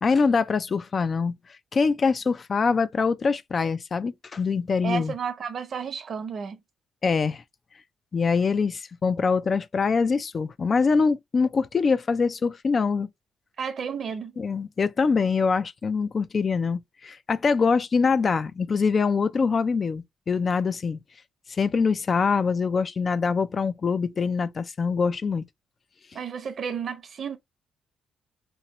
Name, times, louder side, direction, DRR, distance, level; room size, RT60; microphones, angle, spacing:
voice 1, 0.0-1.3 1.7-5.1 7.0-7.4 8.1-13.1 14.4-21.0 21.5-25.4, left 5 dB, 40° left, 0.3 m, -24 dB
voice 2, 4.8-6.6 13.6-14.3 26.1-27.4, right 6 dB, 50° right, 0.7 m, -32 dB
3.0 x 2.9 x 2.9 m
cardioid pair, 90°, 0 cm